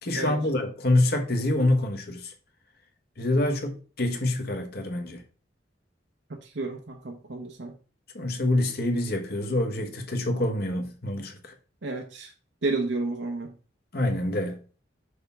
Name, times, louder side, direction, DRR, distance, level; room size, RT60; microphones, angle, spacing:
voice 1, 0.0-2.3 3.2-5.2 8.1-11.5 13.9-14.6, left 1 dB, 55° left, 1.4 m, -26 dB
voice 2, 6.4-7.7 11.8-12.3 12.6-13.5, right 3 dB, 75° right, 0.9 m, -31 dB
6.5 x 5.7 x 3.5 m
head